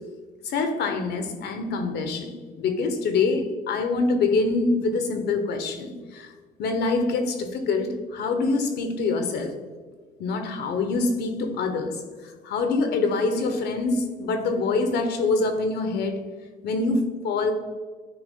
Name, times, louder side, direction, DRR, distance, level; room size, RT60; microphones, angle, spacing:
voice 1, 0.4-6.3 6.6-9.5 10.2-12.0 12.4-16.2 16.6-17.5, left 3 dB, 70° left, 7 dB, 1.1 m, -25 dB
9.7 x 3.3 x 3.7 m, 1.4 s
cardioid pair, 100°, 18 cm